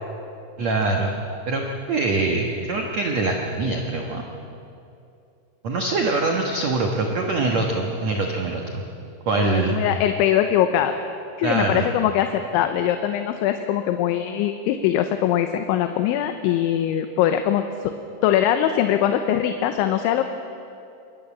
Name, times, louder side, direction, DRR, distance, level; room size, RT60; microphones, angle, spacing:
voice 1, 0.6-1.1 1.5-1.6 1.9-4.2 5.6-8.8 9.3-9.8 11.4-11.9, right 3 dB, 65° right, 1 dB, 1.7 m, -23 dB
voice 2, 9.4-11.0 11.4-17.9 18.2-20.2, left 10 dB, 80° left, 7 dB, 3.2 m, -22 dB
24.5 x 21.0 x 7.3 m, 2.6 s
omnidirectional pair, 5.4 m